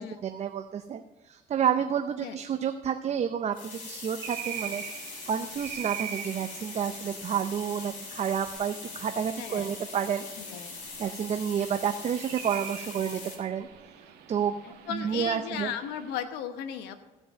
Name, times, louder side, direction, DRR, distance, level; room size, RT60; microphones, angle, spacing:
voice 1, 0.0-4.8 5.3-10.3 11.0-13.7 14.3-14.5 14.9-15.7, right 8 dB, 40° right, 8 dB, 0.6 m, -30 dB
sound 1, 3.5-13.4, left 4 dB, 50° left, 3.1 m, -42 dB
sound 2, 4.2-16.2, right 10 dB, 80° right, 1.5 m, -43 dB
voice 2, 9.4-9.7 10.4-10.8 14.6-17.0, left 9 dB, 90° left, 9 dB, 1.1 m, -36 dB
15.5 x 5.4 x 6.5 m, 1.1 s
cardioid pair, 110°, 17 cm